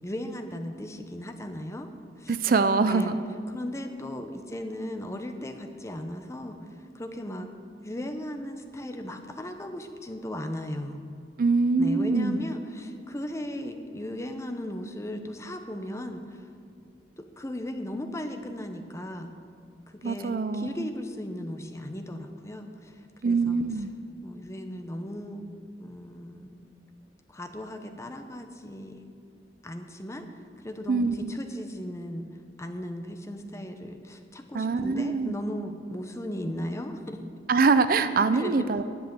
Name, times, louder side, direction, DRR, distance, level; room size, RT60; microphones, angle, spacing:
voice 1, 0.0-1.9 2.2-2.3 2.8-3.2 3.5-7.5 7.8-11.0 11.8-16.5 17.2-19.3 19.9-23.6 24.2-25.5 25.8-26.5 27.3-29.2 29.6-30.3 30.6-32.3 32.6-37.2 38.3-38.7, left 1 dB, 15° left, 6 dB, 0.7 m, -36 dB
voice 2, 2.3-3.1 11.4-12.4 20.0-20.9 23.2-23.9 30.9-31.3 34.5-35.3 37.5-38.8, right 4 dB, 50° right, 12 dB, 0.4 m, -24 dB
10.5 x 8.1 x 6.7 m, 2.4 s
head